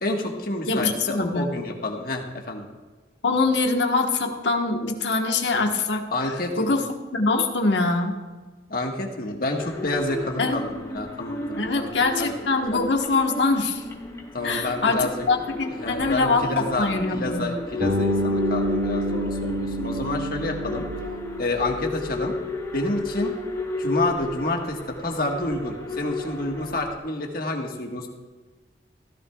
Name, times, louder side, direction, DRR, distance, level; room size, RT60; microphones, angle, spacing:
voice 1, 0.0-2.7 6.1-6.8 8.7-11.9 12.2-12.3 12.7-12.8 14.3-15.2 15.7-20.9 21.4-22.3 22.7-23.3 23.8-28.1, left 2 dB, 55° left, 1 dB, 1.6 m, -29 dB
voice 2, 0.7-1.5 3.2-6.8 7.1-8.1 10.4-10.6 11.6-13.8 14.4-17.6, left 3 dB, 90° left, 2 dB, 1.4 m, -24 dB
sound 1, 9.6-27.0, left 2 dB, 20° left, 2.0 m, -33 dB
Bass guitar, 17.8-21.8, equal, 55° right, 2.3 m, -27 dB
16.0 x 14.5 x 2.4 m, 1.3 s
head